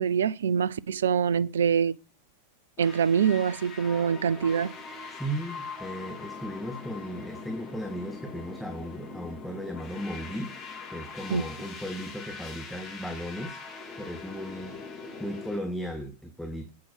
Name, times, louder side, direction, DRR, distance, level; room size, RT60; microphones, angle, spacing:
voice 1, 0.0-2.0 2.8-4.7 11.3-11.4, right 7 dB, 65° right, 0.5 m, -25 dB
sound 1, 2.8-15.6, left 4 dB, 30° left, 2.6 m, -42 dB
voice 2, 5.1-10.5 10.9-13.6 14.0-14.8 15.2-16.7, equal, ahead, 1.4 m, -36 dB
8.6 x 8.5 x 6.0 m
figure-of-eight pair, 90°, 0 cm